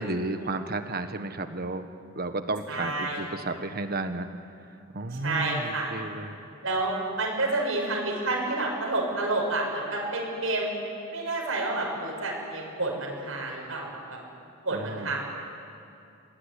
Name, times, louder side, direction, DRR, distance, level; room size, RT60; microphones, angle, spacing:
voice 1, 0.0-1.9 2.1-4.3 4.9-6.4 14.7-15.1, right 2 dB, 50° right, 8 dB, 1.4 m, -32 dB
voice 2, 2.7-3.3 5.2-5.9 6.6-10.7 11.1-14.2 14.6-15.2, right 2 dB, 75° right, -2 dB, 6.4 m, -29 dB
26.5 x 18.5 x 10.0 m, 2.6 s
head